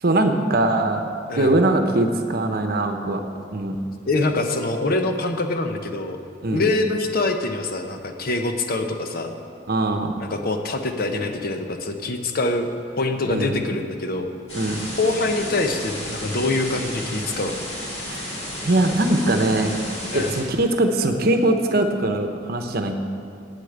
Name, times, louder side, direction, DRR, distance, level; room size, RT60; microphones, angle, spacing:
voice 1, 0.0-1.1 1.4-3.2 3.5-3.8 6.4-6.7 9.7-10.1 13.3-13.5 14.5-14.9 18.1-18.3 18.6-19.8 20.1-22.9, right 2 dB, 55° right, 6 dB, 0.9 m, -21 dB
voice 2, 4.1-6.2 6.5-9.3 10.2-12.7 13.0-14.3 15.0-17.6 20.1-20.3, left 2 dB, 50° left, 5 dB, 0.9 m, -24 dB
sound 1, 14.5-20.4, left 1 dB, 35° left, 3.3 m, -32 dB
8.5 x 8.3 x 8.0 m, 2.5 s
head